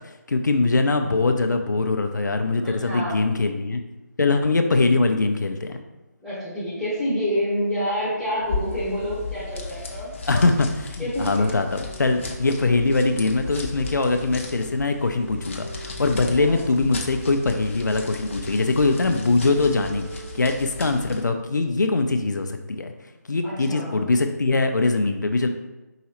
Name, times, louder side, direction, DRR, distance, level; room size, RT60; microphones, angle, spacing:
voice 1, 0.3-3.8 4.2-5.8 10.3-11.7 12.0-22.9 23.3-25.5, left 3 dB, 80° left, 6 dB, 0.4 m, -22 dB
voice 2, 2.5-3.2 6.2-10.1 11.0-11.5 16.2-16.6 23.4-24.0, equal, ahead, -8 dB, 0.9 m, -28 dB
sound 1, 8.4-21.3, left 3 dB, 45° left, 0.6 m, -36 dB
sound 2, 11.9-13.4 13.7-19.1 19.4-20.5, right 4 dB, 50° right, 0.5 m, -43 dB
4.8 x 3.1 x 2.9 m, 1.1 s
figure-of-eight pair, 155°, 10 cm